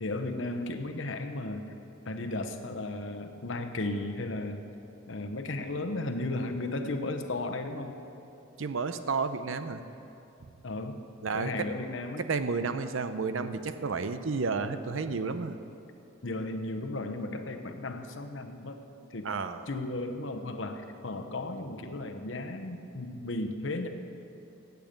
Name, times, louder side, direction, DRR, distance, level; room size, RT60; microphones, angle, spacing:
voice 1, 0.0-1.6 2.0-4.6 5.1-8.0 10.6-11.0 11.3-12.2 16.2-18.8 19.1-19.3 19.7-23.9, left 2 dB, 70° left, 6 dB, 0.9 m, -35 dB
voice 2, 8.6-9.8 11.2-11.7 12.2-15.6 19.2-19.7, right 4 dB, 75° right, 10 dB, 0.6 m, -31 dB
16.0 x 8.3 x 5.2 m, 2.8 s
head